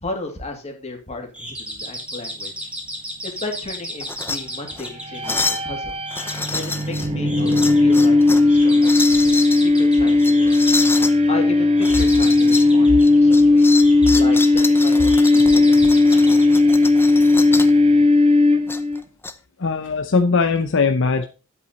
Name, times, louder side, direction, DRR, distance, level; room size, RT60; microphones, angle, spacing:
voice 1, 0.0-2.7 3.2-6.0 6.5-10.7 11.3-13.7 14.1-16.2, left 2 dB, 30° left, 2 dB, 2.8 m, -34 dB
sound 1, 1.3-17.4, equal, 5° right, 2.3 m, -35 dB
sound 2, 4.0-4.4 4.7-4.9 5.2-5.7 6.1-7.1 7.5-8.5 8.8-9.6 10.2-11.1 11.8-12.7 13.0-17.8 18.7-19.3, left 3 dB, 10° left, 0.7 m, -28 dB
sound 3, 5.0-19.0, left 2 dB, 30° right, 1.2 m, -16 dB
voice 2, 19.6-21.2, left 4 dB, 60° left, 7 dB, 0.8 m, -19 dB
9.8 x 8.3 x 4.1 m, 0.32 s
head